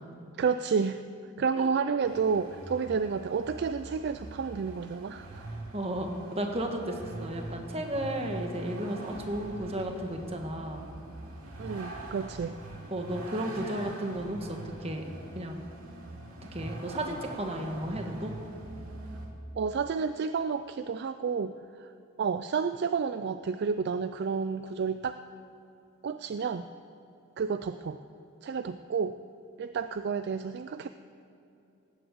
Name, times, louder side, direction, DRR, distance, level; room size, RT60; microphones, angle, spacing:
voice 1, 0.4-1.0 1.4-5.5 11.6-12.6 19.6-21.9 22.2-25.2 26.0-26.7 27.4-28.0 28.4-29.2 29.6-30.9, right 5 dB, 50° right, 11 dB, 0.3 m, -30 dB
Vehicle, 2.0-19.3, right 1 dB, 85° right, 2.6 m, -43 dB
voice 2, 5.7-10.8 12.9-15.0 15.3-15.6 16.5-18.3, right 1 dB, 30° right, 3 dB, 1.4 m, -34 dB
18.0 x 7.8 x 7.9 m, 2.7 s
head